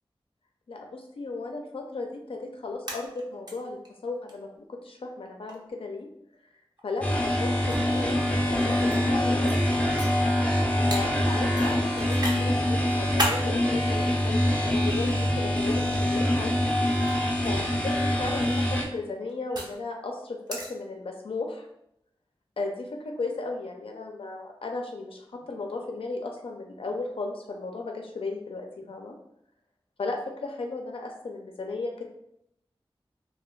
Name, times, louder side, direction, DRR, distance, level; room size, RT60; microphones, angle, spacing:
voice 1, 0.7-6.1 6.8-9.6 10.8-16.5 17.1-21.7 22.6-29.1 30.0-32.0, left 3 dB, 75° left, 2 dB, 0.4 m, -35 dB
sound 1, 2.6-3.5 3.8-3.9 4.3-4.4 5.5-5.7 6.8-6.9 7.7-9.0 9.5-9.6 10.0-10.1 10.9-11.0 11.6-12.4 12.8-13.4 14.3-15.0 16.0-16.3 16.9-17.1 18.5-19.8 20.5-20.7, right 1 dB, 45° right, 0.6 m, -32 dB
sound 2, 7.0-18.8, left 1 dB, 15° left, 0.5 m, -25 dB
2.2 x 2.2 x 3.6 m, 0.80 s
wide cardioid pair, 45°, 10 cm